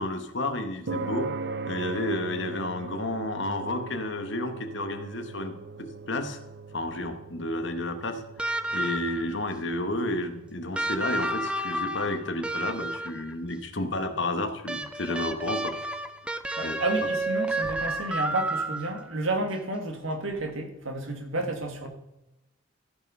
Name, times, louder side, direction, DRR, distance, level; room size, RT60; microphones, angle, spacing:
voice 1, 0.0-1.3 1.6-6.4 6.7-8.2 8.7-15.7 16.6-16.8, left 1 dB, 65° left, 7 dB, 1.2 m, -31 dB
sound 1, 0.9-17.4, right 4 dB, 55° right, 0.6 m, -41 dB
sound 2, 8.4-9.3 10.7-13.3 14.7-19.1 20.5-20.6, right 1 dB, 5° right, 0.4 m, -31 dB
voice 2, 16.6-21.9, right 1 dB, 80° right, 5 dB, 1.8 m, -31 dB
14.0 x 5.4 x 5.5 m, 0.95 s
head